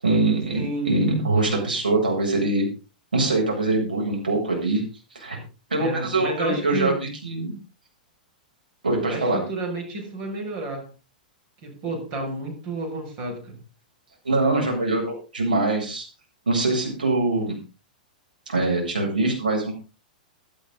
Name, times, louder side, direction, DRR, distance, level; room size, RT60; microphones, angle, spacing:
voice 1, 0.0-2.7 3.1-4.8 5.1-5.4 5.7-7.5 8.8-9.4 14.2-16.0 16.5-17.5 18.5-19.7, right 2 dB, 80° right, 0 dB, 7.9 m, -23 dB
voice 2, 0.5-0.9 5.8-7.0 9.1-10.9 11.6-13.6, right 2 dB, 45° right, 3 dB, 7.2 m, -31 dB
17.5 x 11.5 x 4.1 m, 0.33 s
figure-of-eight pair, 100°, 5 cm